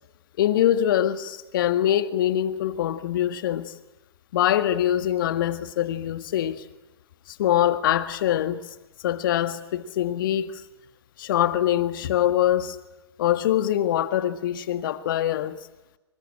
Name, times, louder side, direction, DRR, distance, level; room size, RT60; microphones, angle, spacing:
voice 1, 0.4-3.7 4.3-6.6 7.3-8.6 9.0-10.6 11.2-12.8 13.2-15.6, left 11 dB, 55° left, 1.8 m, -23 dB
26.0 x 24.5 x 8.8 m
figure-of-eight pair, 110°, 13 cm